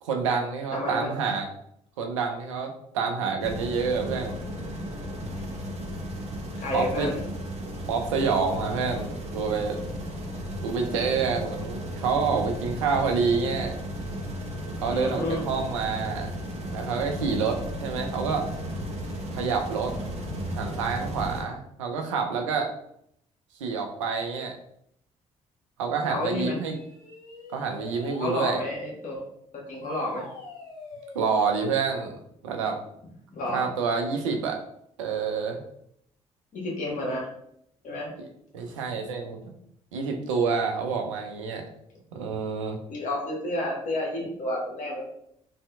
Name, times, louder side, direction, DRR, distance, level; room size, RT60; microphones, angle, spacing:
voice 1, 0.0-1.5 2.0-4.4 6.7-7.1 7.9-9.8 10.6-13.7 14.8-16.3 16.7-18.5 19.3-19.9 20.5-22.7 23.6-24.5 25.8-26.8 27.5-28.6 31.1-32.2 32.4-32.8 33.5-34.6 35.0-35.6 38.2-38.3 38.5-39.5 39.9-41.6 42.1-42.8, right 5 dB, 90° right, 3 dB, 0.4 m, -28 dB
voice 2, 0.7-1.1 6.6-7.2 14.9-15.5 26.1-26.6 28.2-29.3 29.5-30.3 33.3-33.7 36.5-37.3 37.8-38.1 42.9-45.1, left 1 dB, 55° left, -3 dB, 1.2 m, -30 dB
sound 1, 3.4-21.4, equal, 45° right, 0.8 m, -34 dB
sound 2, 26.7-28.5 29.8-31.9, left 2 dB, 80° left, 0.7 m, -43 dB
3.2 x 2.7 x 2.2 m, 0.72 s
hypercardioid pair, 50°, 16 cm